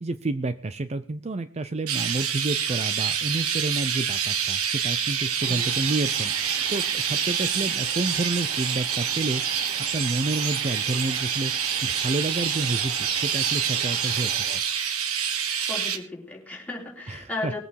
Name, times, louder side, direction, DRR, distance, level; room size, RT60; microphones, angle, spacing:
voice 1, 0.0-6.3 6.7-9.4 9.9-11.5 11.8-14.3 17.1-17.5, right 2 dB, 30° right, 12 dB, 0.5 m, -29 dB
Chirp tweet, 1.9-16.0, right 8 dB, 80° right, 1.6 m, -27 dB
sound 1, 5.4-14.6, right 4 dB, 45° right, 1.3 m, -42 dB
voice 2, 15.7-17.6, left 2 dB, 5° left, -2 dB, 3.4 m, -35 dB
20.0 x 8.6 x 4.6 m, 0.40 s
head